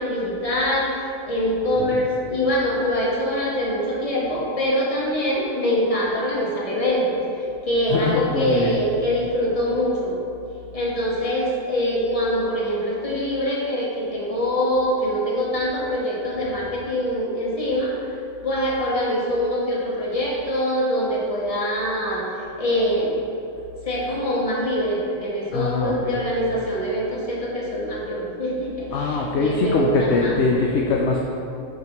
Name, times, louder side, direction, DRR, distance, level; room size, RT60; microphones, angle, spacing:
voice 1, 0.0-7.2 7.6-10.2 10.7-17.9 18.4-22.3 22.6-23.2 23.8-30.4, equal, 25° left, -5 dB, 1.3 m, -24 dB
voice 2, 7.9-8.8 25.5-26.1 28.9-31.2, left 4 dB, 65° left, -1 dB, 0.7 m, -22 dB
7.2 x 5.7 x 3.0 m, 2.7 s
omnidirectional pair, 1.5 m